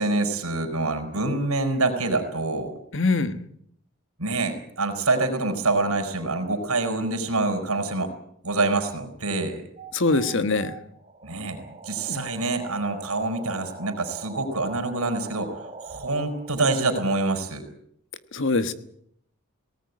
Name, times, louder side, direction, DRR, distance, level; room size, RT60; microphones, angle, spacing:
voice 1, 0.0-2.7 4.2-8.1 8.4-9.6 11.2-15.5 15.8-17.6, right 2 dB, 75° right, 5 dB, 5.1 m, -26 dB
voice 2, 2.9-3.4 9.9-10.7 12.1-12.3 18.3-18.7, left 3 dB, 55° left, 12 dB, 1.5 m, -23 dB
sound 1, 9.8-16.9, right 3 dB, 30° right, 2.4 m, -42 dB
19.0 x 18.5 x 9.6 m, 0.70 s
head